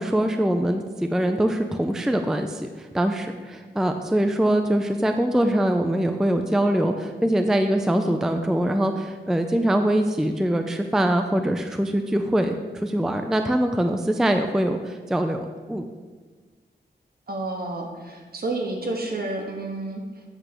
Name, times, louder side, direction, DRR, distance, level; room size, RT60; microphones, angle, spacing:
voice 1, 0.0-15.9, right 1 dB, 5° right, 6 dB, 0.3 m, -23 dB
voice 2, 17.3-20.0, right 2 dB, 55° right, 1 dB, 1.2 m, -30 dB
8.0 x 3.2 x 5.9 m, 1.4 s
wide cardioid pair, 100°, 19 cm